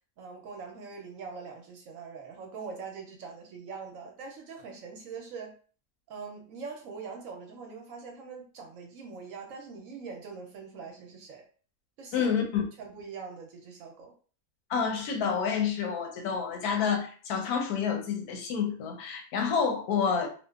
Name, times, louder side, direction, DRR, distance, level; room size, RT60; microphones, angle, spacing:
voice 1, 0.2-5.5 6.1-11.4 12.0-12.3 12.8-14.1, right 5 dB, 70° right, 0.9 m, -43 dB
voice 2, 12.1-12.6 14.7-20.3, left 6 dB, 90° left, 1.1 m, -28 dB
2.7 x 2.2 x 2.3 m
omnidirectional pair, 1.6 m